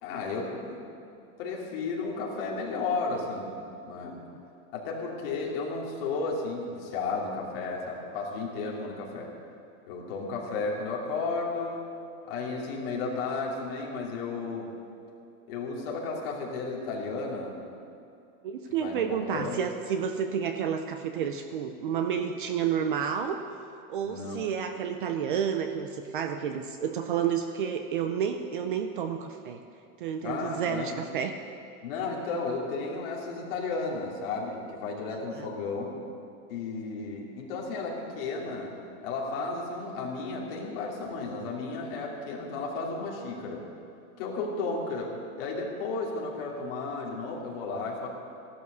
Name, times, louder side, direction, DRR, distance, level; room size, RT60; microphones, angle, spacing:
voice 1, 0.0-3.6 3.9-4.1 4.7-9.3 9.9-11.8 12.2-14.7 15.5-17.6 18.7-19.6 24.0-24.4 30.2-30.9 31.8-35.9 36.5-38.7 39.0-43.6 44.2-48.1, left 3 dB, 40° left, -3 dB, 3.0 m, -33 dB
voice 2, 18.4-23.4 23.9-29.6 30.0-31.3 35.3-35.5, right 8 dB, 35° right, 7 dB, 0.6 m, -30 dB
16.0 x 12.0 x 6.8 m, 2.6 s
supercardioid pair, 175°, 43 cm